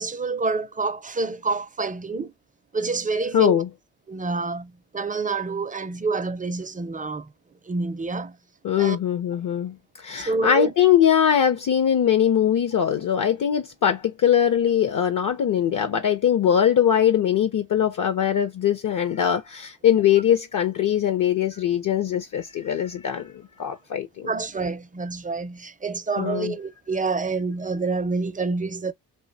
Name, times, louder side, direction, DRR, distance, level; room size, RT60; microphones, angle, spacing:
voice 1, 0.0-2.3 2.7-3.6 4.1-7.3 7.7-8.4 8.8-9.0 10.3-10.7 24.2-28.9, right 3 dB, 20° right, 0.4 m, -27 dB
voice 2, 3.3-3.7 8.6-23.3 23.6-24.3 26.2-26.6, left 9 dB, 50° left, 0.6 m, -21 dB
2.8 x 2.2 x 2.6 m
cardioid pair, 65°, 41 cm